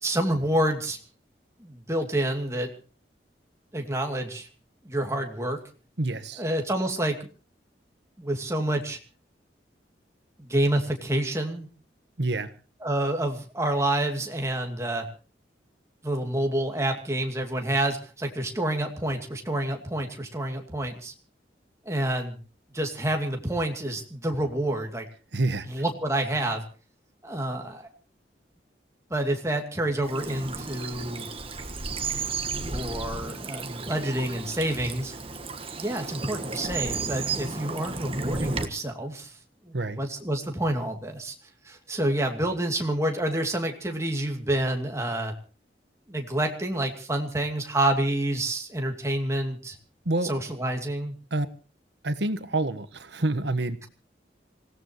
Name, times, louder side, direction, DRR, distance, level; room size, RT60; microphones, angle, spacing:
voice 1, 0.0-1.0 1.6-2.7 3.7-4.5 4.8-5.6 6.4-7.2 8.2-9.0 10.4-11.7 12.8-15.1 16.0-21.1 21.8-22.4 22.7-25.1 25.7-26.6 27.2-27.9 29.1-31.3 32.6-35.1 35.8-39.3 39.6-41.3 41.6-45.3 46.1-49.8 50.2-51.1, right 1 dB, 15° right, 3 dB, 2.6 m, -28 dB
voice 2, 6.0-6.4 12.2-12.5 25.3-25.7 39.7-40.0 50.0-50.3 51.3-51.5 52.0-53.9, right 2 dB, 70° right, 12 dB, 1.4 m, -27 dB
Bird vocalization bird call bird song / Stream, 30.0-38.7, right 4 dB, 30° right, 1.5 m, -33 dB
26.0 x 17.0 x 3.1 m, 0.35 s
head